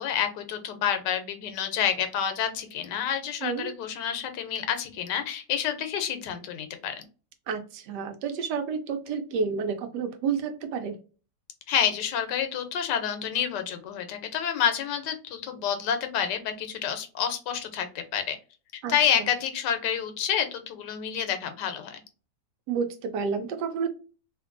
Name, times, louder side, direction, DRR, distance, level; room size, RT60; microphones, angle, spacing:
voice 1, 0.0-7.0 11.7-18.4 18.9-22.0, left 8 dB, 90° left, 8 dB, 1.3 m, -28 dB
voice 2, 3.4-3.7 7.5-11.0 18.8-19.3 22.7-23.9, right 5 dB, 85° right, 7 dB, 1.2 m, -30 dB
2.8 x 2.6 x 2.4 m, 0.34 s
omnidirectional pair, 1.8 m